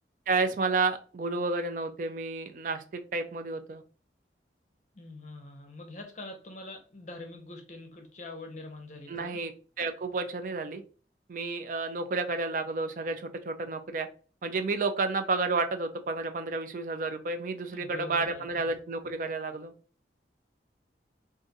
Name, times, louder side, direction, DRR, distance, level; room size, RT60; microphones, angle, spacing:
voice 1, 0.3-2.8 3.1-3.8 9.1-9.5 9.8-10.8 11.3-14.1 14.4-19.7, right 3 dB, 45° right, 8 dB, 0.4 m, -31 dB
voice 2, 4.9-9.4 17.7-18.7, left 2 dB, 40° left, 4 dB, 0.7 m, -44 dB
2.5 x 2.4 x 3.9 m, 0.37 s
head